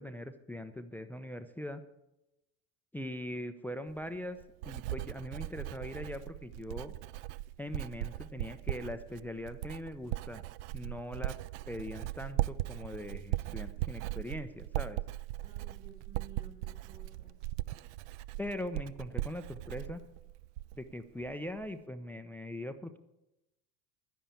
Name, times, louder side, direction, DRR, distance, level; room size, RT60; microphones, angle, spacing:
voice 1, 0.0-1.8 2.9-4.4 4.7-6.9 7.6-10.4 10.7-11.4 11.7-15.0 18.4-20.0 20.7-23.0, left 1 dB, 5° left, 10 dB, 0.6 m, -41 dB
Writing, 3.9-20.9 21.2-21.7, right 16 dB, 50° right, 0.5 m, -39 dB
voice 2, 15.4-17.5, right 5 dB, 80° right, -1 dB, 4.3 m, -54 dB
11.0 x 10.5 x 6.9 m, 0.93 s
figure-of-eight pair, 70°, 48 cm